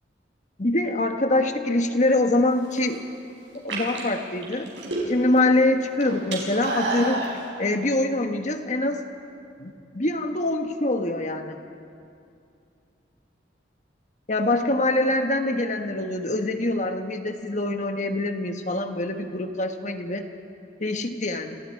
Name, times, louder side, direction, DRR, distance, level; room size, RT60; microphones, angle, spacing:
voice 1, 0.6-3.0 3.5-4.7 5.1-7.2 7.6-9.0 9.6-11.6 14.3-20.3 20.8-21.6, left 2 dB, 40° left, 6 dB, 1.4 m, -24 dB
sound 1, 2.5-3.0 3.5-5.4 5.7-7.3, right 2 dB, 75° right, 5.3 m, -29 dB
29.0 x 26.5 x 4.7 m, 2.6 s
head